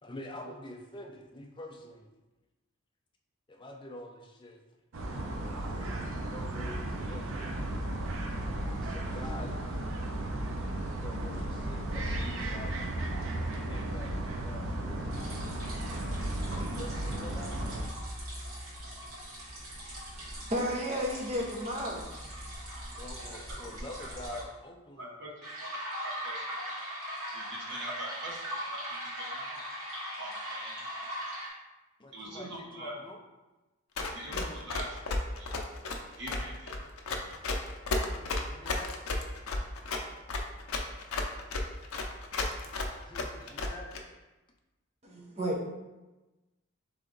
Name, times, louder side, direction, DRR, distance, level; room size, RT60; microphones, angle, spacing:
voice 1, 0.0-2.1 3.5-4.6 5.7-7.8 8.6-9.9 10.9-13.1 13.7-15.5 16.3-17.7 22.9-25.2 32.0-33.2 37.9-38.9 43.1-43.9, left 1 dB, 20° left, 2 dB, 0.4 m, -47 dB
sound 1, 4.9-17.8, right 1 dB, 70° right, 0.6 m, -35 dB
sound 2, 15.1-24.4 25.4-31.5, equal, 85° right, 1.5 m, -40 dB
voice 2, 20.2-22.1 45.0-45.7, equal, 30° right, -1 dB, 0.7 m, -33 dB
voice 3, 24.0-24.4 25.0-25.3 25.6-25.7 26.0-26.7 27.3-29.6 30.2-30.8 32.1-32.9 34.1-35.7 36.2-36.8, right 1 dB, 55° right, -3 dB, 1.0 m, -43 dB
Run, 34.0-44.0, left 3 dB, 85° left, 0.5 m, -33 dB
3.7 x 3.4 x 3.8 m, 1.1 s
head